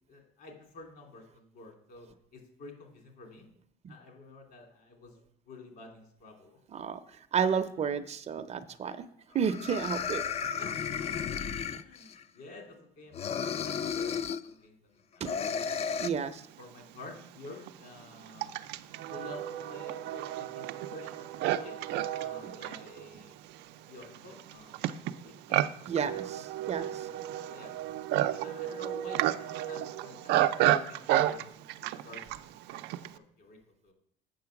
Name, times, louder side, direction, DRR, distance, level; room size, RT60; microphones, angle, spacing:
voice 1, 0.1-3.5 3.9-5.1 5.5-6.6 10.6-15.6 16.6-18.6 19.1-23.3 23.9-25.7 26.9-27.1 27.5-27.7 28.4-31.5 31.8-32.4 32.7-32.8 33.1-33.9, left 3 dB, 65° left, 2 dB, 2.9 m, -50 dB
voice 2, 7.3-9.0 9.3-10.3 11.7-11.8 15.2-15.3 16.0-16.4 25.9-27.1, right 6 dB, 40° right, 11 dB, 0.6 m, -31 dB
sound 1, 8.9-9.0 9.4-12.2 13.1-14.5 15.2-16.1, left 7 dB, 40° left, 0.4 m, -33 dB
Livestock farm animals working animals, 16.4-16.5 17.2-33.2, right 13 dB, 90° right, 0.5 m, -32 dB
7.8 x 6.1 x 5.8 m, 0.67 s
cardioid pair, 110°, 17 cm